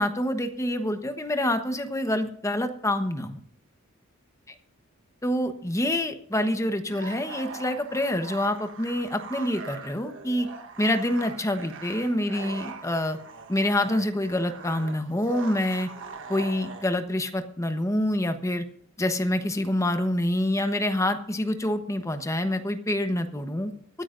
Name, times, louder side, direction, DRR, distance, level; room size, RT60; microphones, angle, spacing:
voice 1, 0.0-3.4 4.5-4.6 5.2-10.5 10.8-13.2 13.5-15.9 16.3-18.6 19.0-23.7, left 1 dB, 15° left, 7 dB, 1.1 m, -26 dB
sound 1, 6.8-17.0, right 5 dB, 60° right, 1.3 m, -42 dB
24.5 x 9.9 x 2.6 m, 0.64 s
head